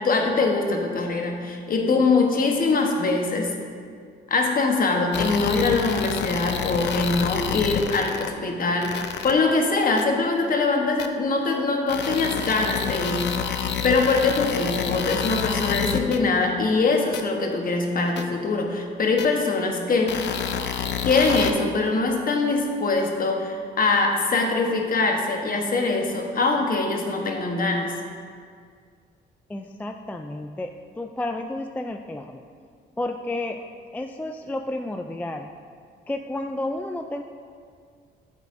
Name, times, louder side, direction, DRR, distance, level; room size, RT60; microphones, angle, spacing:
voice 1, 0.0-3.5 4.3-13.5 13.8-20.2 21.0-27.9, left 3 dB, 45° left, 2 dB, 1.1 m, -23 dB
sound 1, 5.1-8.3 8.8-9.3 10.0-10.1 11.0-11.1 11.9-16.2 17.1-17.2 18.2-18.3 19.2-19.3 20.1-21.5, left 8 dB, 60° left, 0.6 m, -28 dB
voice 2, 29.5-32.4 33.0-33.6 33.9-35.5 36.1-37.2, left 1 dB, 10° left, 5 dB, 0.3 m, -31 dB
8.9 x 8.0 x 2.6 m, 2.1 s
cardioid pair, 90°, 20 cm